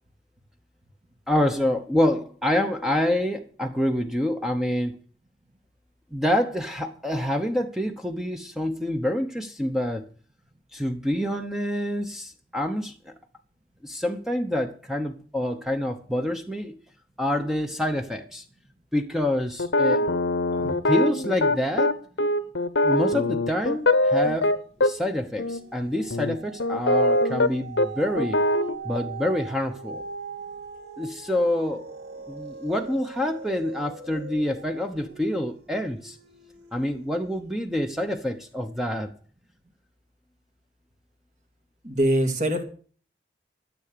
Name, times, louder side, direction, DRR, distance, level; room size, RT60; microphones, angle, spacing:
voice 1, 1.3-4.9 6.1-10.0 10.7-12.9 13.8-16.7 17.2-18.4 18.9-20.1 20.8-21.9 22.8-24.5 24.8-28.4 28.8-30.0 31.0-31.8 32.3-36.2 36.7-39.1, left 1 dB, ahead, 5 dB, 0.9 m, -27 dB
sound 1, 19.6-24.9 25.4-25.6 26.1-27.5 27.8-27.9 28.2-28.8, left 1 dB, 90° left, 1.0 m, -22 dB
sound 2, 24.1-24.7 25.0-37.5 38.1-38.2, right 4 dB, 70° right, 3.2 m, -41 dB
voice 2, 41.8-42.6, right 1 dB, 40° right, 5 dB, 2.4 m, -24 dB
13.0 x 7.9 x 6.7 m, 0.42 s
head